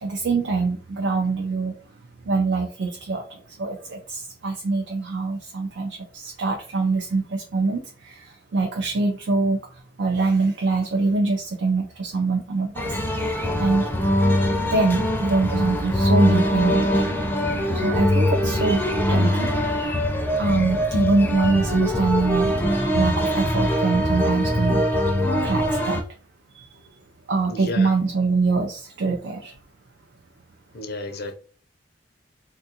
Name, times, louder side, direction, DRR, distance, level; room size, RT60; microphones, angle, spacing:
voice 1, 0.0-1.7 2.3-3.2 3.6-9.6 10.0-13.9 14.7-17.2 17.7-18.8 19.1-19.9 20.4-22.6 22.9-24.8 25.1-26.0 27.3-29.5, right 3 dB, 85° right, 0.5 m, -24 dB
sound 1, 12.8-26.0, equal, 10° left, 0.4 m, -22 dB
voice 2, 27.4-27.9 30.7-31.3, left 2 dB, 60° left, 0.5 m, -32 dB
3.5 x 2.3 x 2.7 m
head